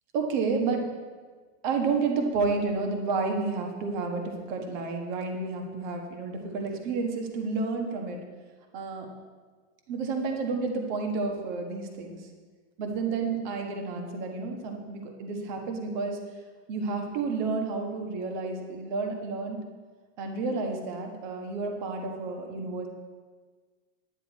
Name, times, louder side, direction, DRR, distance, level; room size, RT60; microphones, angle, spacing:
voice 1, 0.1-0.9 1.6-8.2 8.7-9.1 9.9-12.2 12.8-16.2 16.7-19.6 20.2-22.9, right 4 dB, 40° right, 3 dB, 1.4 m, -30 dB
10.0 x 10.0 x 4.2 m, 1.5 s
supercardioid pair, 180°, 36 cm